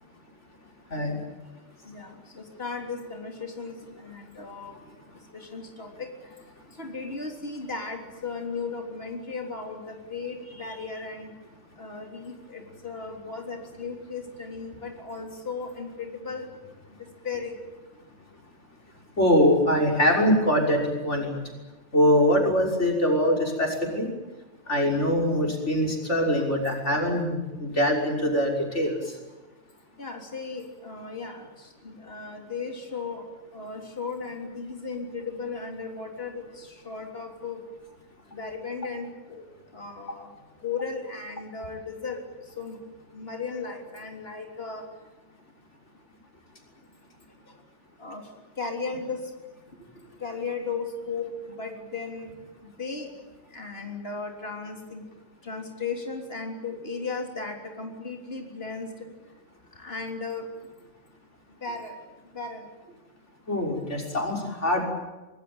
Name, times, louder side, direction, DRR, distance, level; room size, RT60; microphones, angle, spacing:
voice 1, 1.9-2.2 2.6-4.7 5.3-6.1 6.8-11.3 11.8-16.5 17.2-17.5 30.0-31.5 31.8-33.2 33.5-37.6 38.3-39.4 39.7-40.3 40.6-42.2 42.6-42.8 43.1-44.8 48.0-48.2 48.6-49.2 50.2-51.3 51.6-52.3 52.8-53.1 53.5-55.0 55.4-58.9 59.8-60.5 61.6-61.9 62.3-62.6, left 4 dB, 55° left, 2 dB, 3.8 m, -35 dB
voice 2, 19.2-21.3 21.9-24.1 24.7-29.0 63.5-64.8, equal, 75° left, 1 dB, 6.4 m, -23 dB
24.5 x 23.0 x 8.9 m, 1.1 s
omnidirectional pair, 1.2 m